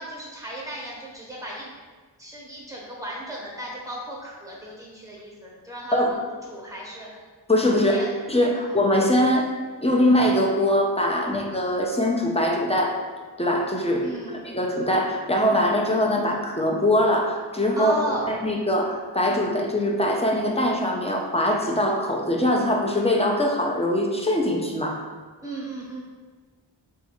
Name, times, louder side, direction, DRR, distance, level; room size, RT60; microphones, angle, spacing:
voice 1, 0.0-1.7 2.2-7.2 7.9-8.1 8.5-8.8 14.0-14.4 17.8-18.3 25.4-26.0, right 1 dB, 10° right, -5 dB, 0.9 m, -35 dB
voice 2, 7.5-9.5 9.8-13.0 13.4-14.1 14.5-17.9 18.3-25.0, left 1 dB, 15° left, 0 dB, 0.4 m, -22 dB
4.0 x 2.3 x 2.9 m, 1.4 s
wide cardioid pair, 65°, 43 cm